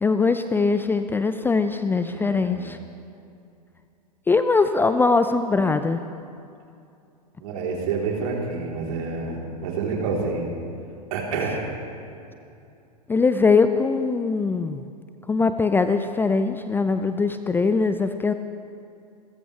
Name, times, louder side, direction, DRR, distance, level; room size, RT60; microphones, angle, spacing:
voice 1, 0.0-2.8 4.3-6.0 13.1-14.8 15.3-18.3, left 4 dB, 10° left, 10 dB, 0.5 m, -21 dB
voice 2, 2.1-2.7 7.4-10.5 11.1-11.7, right 4 dB, 55° right, -2 dB, 3.5 m, -28 dB
28.0 x 14.0 x 3.3 m, 2.6 s
figure-of-eight pair, 95°, 21 cm